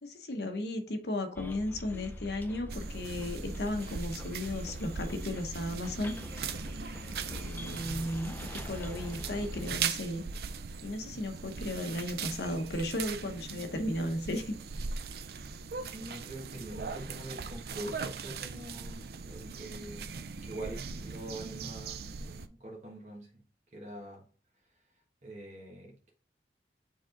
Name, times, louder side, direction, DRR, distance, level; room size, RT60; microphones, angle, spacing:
voice 1, 0.0-6.1 7.3-10.2 10.8-14.5, left 1 dB, 70° left, 6 dB, 0.9 m, -35 dB
Bus, 1.4-9.8, left 1 dB, 10° left, 0.4 m, -43 dB
sound 1, 2.7-22.5, right 5 dB, 60° right, 0.4 m, -40 dB
voice 2, 7.6-8.2 15.9-20.1 20.4-23.3 23.7-24.2 25.2-26.1, right 1 dB, 40° right, -1 dB, 1.4 m, -44 dB
7.1 x 3.6 x 3.8 m, 0.40 s
head